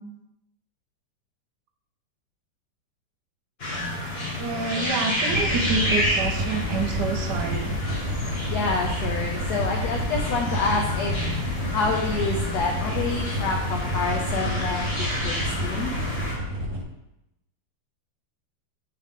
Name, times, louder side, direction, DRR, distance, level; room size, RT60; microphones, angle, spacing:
sound 1, 3.6-16.3, left 1 dB, 35° left, 1.3 m, -30 dB
voice 1, 4.4-7.7, right 4 dB, 70° right, 4 dB, 1.3 m, -28 dB
sound 2, 5.3-16.8, equal, 50° right, 1.3 m, -29 dB
voice 2, 8.5-11.1 11.7-15.3 15.6-15.9, left 4 dB, 70° left, 1 dB, 1.1 m, -27 dB
8.0 x 3.8 x 3.6 m, 0.89 s
omnidirectional pair, 2.1 m